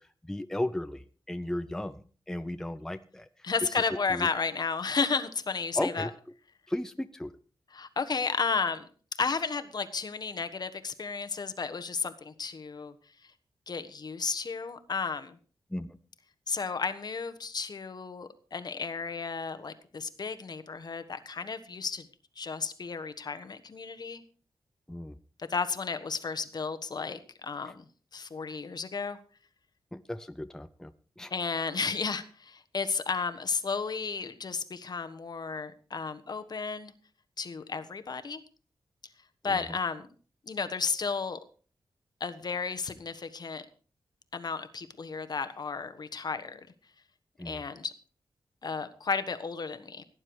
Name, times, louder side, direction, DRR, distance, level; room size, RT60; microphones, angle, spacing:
voice 1, 0.0-3.3 4.1-4.3 5.8-6.1 6.7-7.3 15.7-16.0 24.9-25.1 29.9-30.9 31.2-31.3 39.4-39.8 47.4-47.6, left 1 dB, 5° left, 10 dB, 0.6 m, -35 dB
voice 2, 3.4-6.1 7.7-8.9 9.2-12.9 13.7-15.4 16.5-22.0 22.4-24.2 25.4-27.8 28.1-29.2 31.3-36.9 37.4-38.4 39.4-40.1 40.5-41.4 42.2-43.7 44.3-46.7 47.4-47.9 48.6-50.0, left 5 dB, 50° left, 10 dB, 1.3 m, -33 dB
17.5 x 9.8 x 4.8 m, 0.40 s
wide cardioid pair, 125°, 9 cm